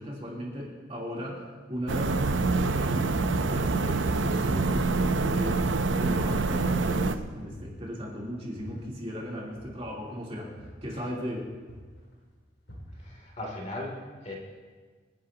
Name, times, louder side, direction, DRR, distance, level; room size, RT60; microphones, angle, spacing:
voice 1, 0.0-3.1 3.5-5.6 6.0-10.5 10.8-11.4, equal, 30° right, -4 dB, 3.3 m, -36 dB
sound 1, 1.7-2.2 2.5-4.2 4.4-6.1 6.5-7.0 7.5-9.1 9.6-11.3 11.7-12.1 12.7-13.3, equal, 90° left, 5.2 m, -45 dB
sound 2, 1.9-7.2, right 3 dB, 75° right, 0.7 m, -26 dB
voice 2, 12.9-14.3, left 1 dB, 40° left, -2 dB, 2.9 m, -38 dB
27.0 x 10.5 x 2.9 m, 1.5 s
head